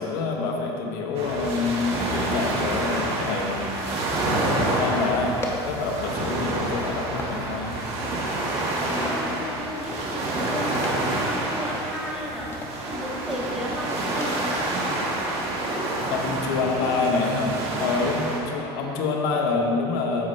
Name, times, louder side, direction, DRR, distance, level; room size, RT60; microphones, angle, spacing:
voice 1, 0.0-3.9 4.3-5.4 5.6-7.9 16.1-20.3, left 4 dB, 85° left, 1 dB, 1.2 m, -27 dB
sound 1, 1.1-18.4, right 2 dB, 50° right, 1.7 m, -28 dB
sound 2, 4.5-15.3, left 1 dB, 20° left, 1.1 m, -40 dB
voice 2, 8.8-14.7 16.7-17.1 18.7-19.1, left 1 dB, 5° right, -4 dB, 1.6 m, -34 dB
9.7 x 7.6 x 3.3 m, 2.9 s
supercardioid pair, 110°, 12 cm